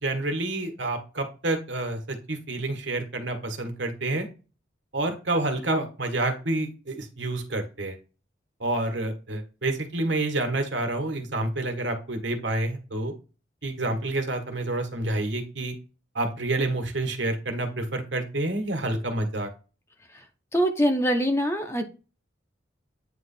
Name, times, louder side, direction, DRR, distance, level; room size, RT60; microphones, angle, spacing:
voice 1, 0.0-4.3 4.9-8.0 8.6-13.1 13.6-15.7 16.1-19.5, right 2 dB, 65° right, 5 dB, 1.5 m, -28 dB
voice 2, 20.5-21.8, equal, 15° left, 5 dB, 0.7 m, -23 dB
9.1 x 3.1 x 4.3 m, 0.33 s
head